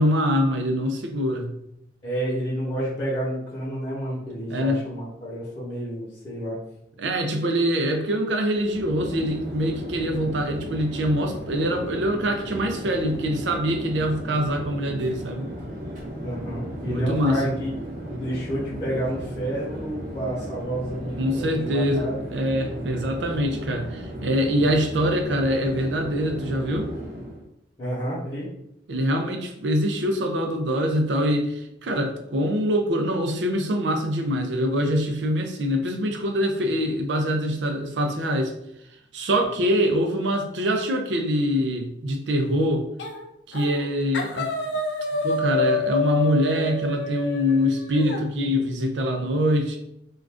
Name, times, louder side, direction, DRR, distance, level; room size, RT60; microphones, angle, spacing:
voice 1, 0.0-1.5 4.5-4.8 7.0-15.5 16.9-17.6 21.2-22.1 22.3-26.9 28.9-38.5 39.1-42.9 43.5-44.5 45.2-49.8, equal, 75° right, 4 dB, 0.5 m, -24 dB
voice 2, 2.0-6.6 16.2-17.7 18.1-22.2 27.8-28.5, right 1 dB, 30° left, -10 dB, 0.9 m, -30 dB
Chatter / Fixed-wing aircraft airplane, 8.5-27.4, equal, 45° right, 0.9 m, -35 dB
sound 1, 43.0-43.2 43.5-43.9 44.1-48.2, left 2 dB, 70° left, 0.4 m, -27 dB
2.5 x 2.3 x 3.3 m, 0.80 s
head